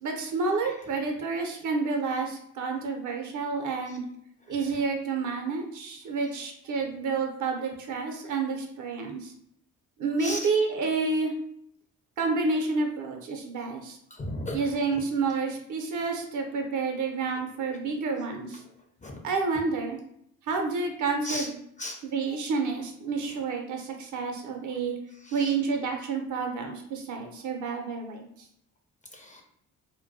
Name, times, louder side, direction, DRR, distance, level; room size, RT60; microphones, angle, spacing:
voice 1, 0.0-4.0 4.5-9.3 10.0-11.3 12.2-14.0 14.5-18.6 19.2-20.0 20.5-21.6 22.0-25.0 25.3-28.3, right 4 dB, 50° right, 3 dB, 0.6 m, -29 dB
voice 2, 4.4-4.8 10.2-10.5 14.1-15.0 17.6-17.8 19.0-19.1 21.2-21.5 21.8-22.0 25.2-25.5 29.1-29.4, left 1 dB, 20° left, 1 dB, 0.5 m, -37 dB
2.2 x 2.1 x 2.6 m, 0.72 s
hypercardioid pair, 45°, 41 cm